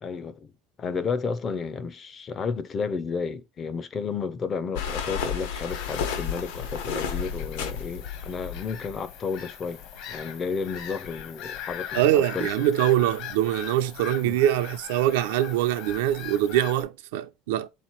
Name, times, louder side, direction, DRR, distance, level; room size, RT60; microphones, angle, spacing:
voice 1, 0.0-0.5 0.8-9.8 10.1-12.5 14.2-14.4, left 5 dB, 25° left, 0.4 m, -32 dB
sound 1, 4.8-9.1, left 7 dB, 85° left, 1.1 m, -32 dB
Bird vocalization bird call bird song / Gull seagull, 5.7-16.8, left 9 dB, 55° left, 0.9 m, -40 dB
voice 2, 11.9-17.7, right 12 dB, 85° right, 0.5 m, -23 dB
3.8 x 3.0 x 4.3 m
cardioid pair, 165°, 0 cm